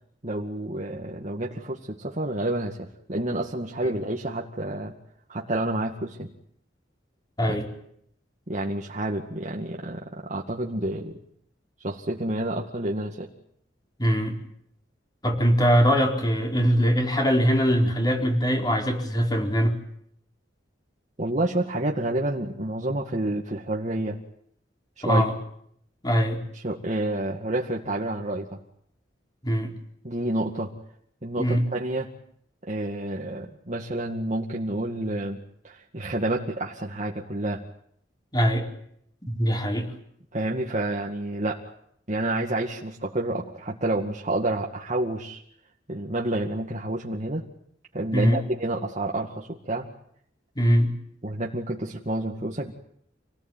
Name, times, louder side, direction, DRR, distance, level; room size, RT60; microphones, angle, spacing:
voice 1, 0.2-4.9 5.3-6.3 8.5-11.2 11.8-13.3 21.2-24.2 25.0-25.3 26.5-28.6 30.0-30.7 31.2-32.1 32.7-37.6 40.3-41.6 42.1-45.4 45.9-47.4 47.9-49.9 51.2-52.7, right 1 dB, 40° right, -1 dB, 2.2 m, -29 dB
voice 2, 14.0-14.4 15.2-19.8 25.0-25.3 26.0-26.4 29.4-29.7 31.4-31.6 38.3-38.7 39.3-39.9 48.1-48.4 50.6-50.9, equal, 20° left, 2 dB, 4.6 m, -22 dB
28.0 x 19.0 x 9.3 m, 0.69 s
head